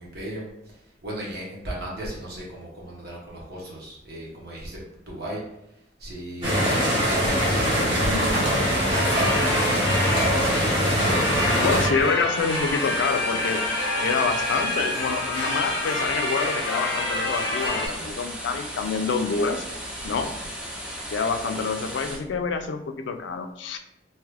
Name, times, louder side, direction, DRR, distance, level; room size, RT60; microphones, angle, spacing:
voice 1, 0.0-5.4 5.7-10.6 11.3-12.8 14.4-14.6 17.6-18.1 20.0-20.5, right 1 dB, 60° right, -4 dB, 1.0 m, -37 dB
sound 1, 6.4-11.9, equal, 30° right, 0.9 m, -22 dB
sound 2, 8.8-17.9, left 2 dB, 30° left, 0.8 m, -28 dB
voice 2, 11.6-13.6 14.0-19.6 20.0-20.3 21.1-23.8, left 5 dB, 90° left, 7 dB, 0.4 m, -27 dB
sound 3, 12.4-22.2, equal, 5° right, 0.5 m, -36 dB
2.8 x 2.4 x 3.2 m, 0.82 s
head